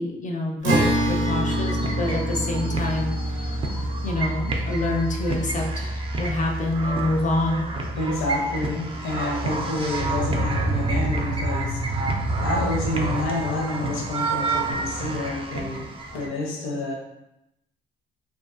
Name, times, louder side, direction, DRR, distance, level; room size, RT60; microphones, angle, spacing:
voice 1, 0.0-3.7 4.0-7.7, left 2 dB, 40° left, 1 dB, 0.5 m, -27 dB
Acoustic guitar, 0.6-6.1, right 1 dB, 90° right, 0.5 m, -28 dB
sound 1, 0.7-16.3, right 2 dB, 25° right, 0.4 m, -28 dB
voice 2, 8.0-11.9 12.4-15.9 16.1-16.9, left 2 dB, 85° left, -1 dB, 0.7 m, -28 dB
2.5 x 2.3 x 2.4 m, 0.87 s
cardioid pair, 90°, 20 cm